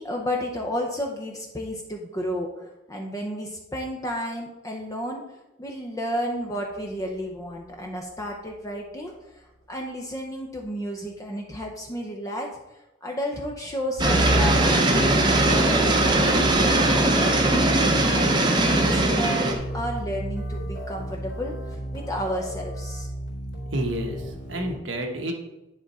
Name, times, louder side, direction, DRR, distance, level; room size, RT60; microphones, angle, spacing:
voice 1, 0.0-12.5 13.0-16.7 17.2-21.5 21.9-23.1, equal, 20° left, 1 dB, 0.6 m, -32 dB
sound 1, 14.0-24.8, right 1 dB, 85° left, 2.7 m, -30 dB
sound 2, 14.0-19.5, right 2 dB, 25° right, 0.7 m, -20 dB
voice 2, 23.7-25.3, right 1 dB, 90° right, 3 dB, 1.1 m, -29 dB
9.7 x 3.6 x 4.1 m, 0.99 s
head